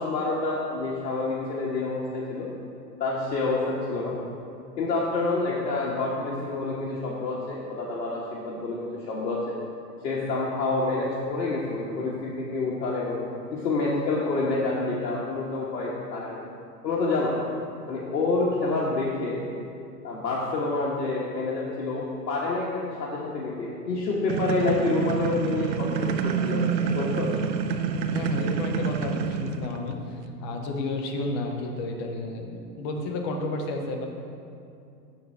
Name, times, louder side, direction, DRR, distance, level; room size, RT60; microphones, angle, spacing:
voice 1, 0.0-2.5 3.0-4.1 4.8-9.5 10.0-16.4 16.8-17.3 17.9-19.4 20.0-25.9 26.2-27.3, left 3 dB, 75° left, -5 dB, 1.4 m, -28 dB
sound 1, 24.3-29.9, right 6 dB, 80° right, 0.7 m, -27 dB
voice 2, 28.1-34.1, left 2 dB, 20° left, 3 dB, 0.4 m, -32 dB
12.0 x 4.0 x 4.4 m, 2.5 s
hypercardioid pair, 120°, 49 cm